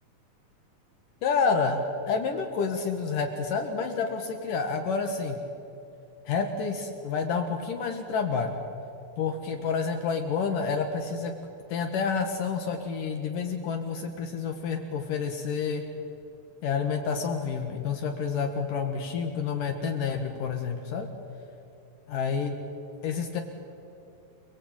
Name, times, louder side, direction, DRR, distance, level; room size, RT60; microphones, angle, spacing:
voice 1, 1.2-5.4 6.3-8.6 9.2-11.3 11.7-15.9 16.6-21.1 22.1-22.6 23.0-23.4, left 5 dB, 70° left, 4 dB, 3.2 m, -29 dB
29.5 x 21.5 x 9.0 m, 2.9 s
omnidirectional pair, 4.0 m